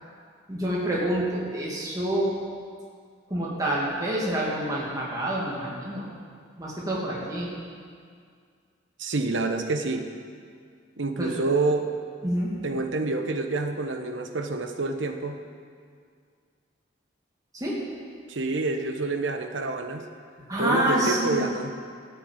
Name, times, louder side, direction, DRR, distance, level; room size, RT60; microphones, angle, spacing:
voice 1, 0.5-2.3 3.3-6.1 6.6-7.5 11.2-11.3 12.2-12.5 17.5-17.8 20.5-21.4, right 1 dB, 20° right, -6 dB, 2.4 m, -27 dB
voice 2, 9.0-10.1 11.0-11.9 12.6-15.4 18.3-20.0 20.6-21.7, right 3 dB, 80° right, 6 dB, 1.1 m, -27 dB
14.0 x 6.9 x 8.9 m, 2.1 s
head